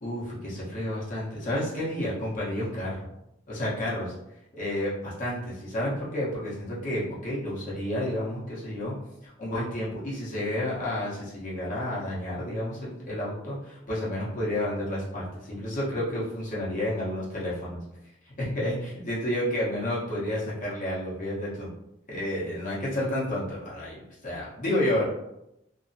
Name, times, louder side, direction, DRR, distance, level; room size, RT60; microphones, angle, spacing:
voice 1, 0.0-3.1 3.5-4.1 4.5-8.9 9.2-17.8 18.4-21.7 22.1-25.1, left 1 dB, 45° left, -7 dB, 1.0 m, -30 dB
3.0 x 2.0 x 2.7 m, 0.85 s
head